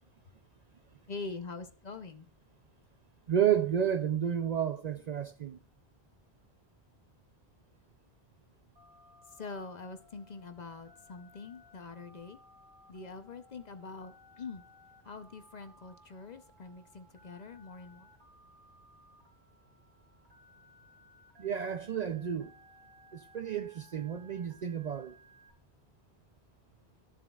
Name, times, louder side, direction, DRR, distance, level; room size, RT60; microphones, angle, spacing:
voice 1, 1.1-2.3 9.3-12.4 12.9-14.6 15.0-18.1, left 4 dB, 45° left, 0.8 m, -44 dB
voice 2, 3.3-5.6 21.4-22.5 23.1-25.2, right 9 dB, 55° right, 0.5 m, -31 dB
Telephone, 8.8-25.5, equal, 85° right, 3.1 m, -60 dB
13.0 x 7.3 x 2.3 m
omnidirectional pair, 1.0 m